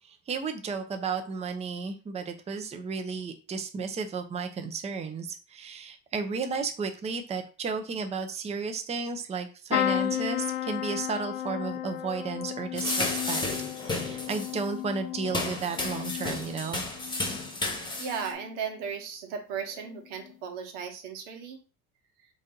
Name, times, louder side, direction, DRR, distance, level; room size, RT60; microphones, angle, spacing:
voice 1, 0.1-13.5 13.8-16.8, right 5 dB, 20° right, 5 dB, 0.6 m, -33 dB
sound 1, 9.7-17.5 18.0-18.5 19.8-20.0 20.2-20.3, left 12 dB, 80° left, 0.6 m, -34 dB
sound 2, 12.7-14.6 15.2-18.3, left 2 dB, 15° left, 1.1 m, -33 dB
voice 2, 18.0-21.6, right 6 dB, 85° right, 4 dB, 1.2 m, -36 dB
4.0 x 2.7 x 3.8 m, 0.34 s
supercardioid pair, 115°, 35 cm